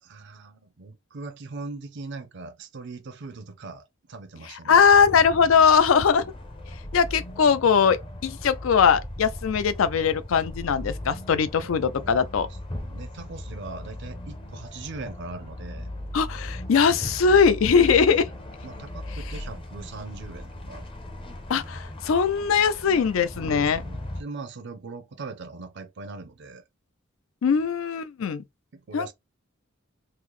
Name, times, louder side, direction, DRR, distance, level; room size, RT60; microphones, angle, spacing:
voice 1, 0.0-4.8 11.6-15.9 17.7-17.8 18.6-20.9 23.3-26.6 28.7-29.1, right 3 dB, 60° right, 0.5 m, -40 dB
voice 2, 4.7-6.3 6.9-12.5 16.1-18.3 21.5-23.8 27.4-28.4 28.9-29.1, left 6 dB, 75° left, 0.4 m, -20 dB
sound 1, 4.7-24.2, left 1 dB, 25° left, 0.6 m, -38 dB
3.8 x 2.0 x 3.0 m
head